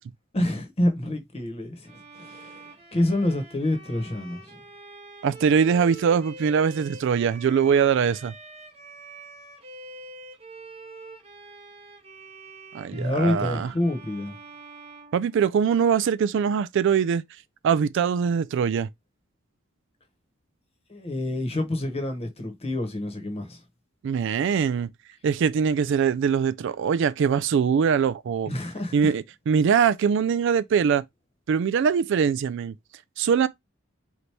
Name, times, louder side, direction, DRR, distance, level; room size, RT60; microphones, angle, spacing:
voice 1, 0.3-4.6 12.9-14.4 20.9-23.6 28.5-29.1, left 1 dB, 30° left, 1.0 m, -27 dB
Bowed string instrument, 1.8-15.9, right 2 dB, 30° right, 0.8 m, -45 dB
voice 2, 5.2-8.3 12.7-13.7 15.1-17.2 17.6-18.9 24.0-24.9 25.2-28.5 28.9-31.0 31.5-32.7 33.2-33.5, right 7 dB, 60° right, 0.3 m, -22 dB
4.0 x 3.0 x 3.3 m
head